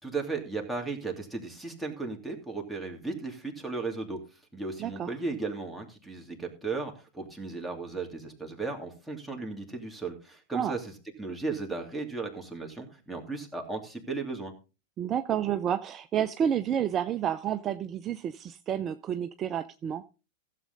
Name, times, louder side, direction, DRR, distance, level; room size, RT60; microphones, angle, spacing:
voice 1, 0.0-4.2 4.5-10.9 11.2-14.5, right 3 dB, ahead, 0 dB, 2.8 m, -35 dB
voice 2, 4.8-5.1 10.5-10.8 15.0-20.0, right 9 dB, 30° right, 10 dB, 0.6 m, -30 dB
15.5 x 7.6 x 3.9 m, 0.33 s
figure-of-eight pair, 95°, 0 cm